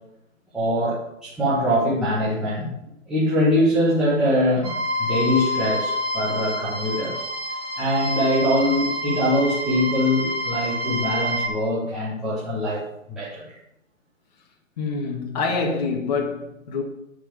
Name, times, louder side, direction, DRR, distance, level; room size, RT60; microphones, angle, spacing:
voice 1, 0.5-2.7 3.1-7.2 7.8-12.8 13.1-13.6, equal, ahead, 1.2 m, -23 dB
sound 1, 4.6-11.5, left 1 dB, 25° right, 2.0 m, -28 dB
voice 2, 14.8-16.8, left 4 dB, 30° left, 1.5 m, -26 dB
10.0 x 4.8 x 6.7 m
hypercardioid pair, 155°, 41 cm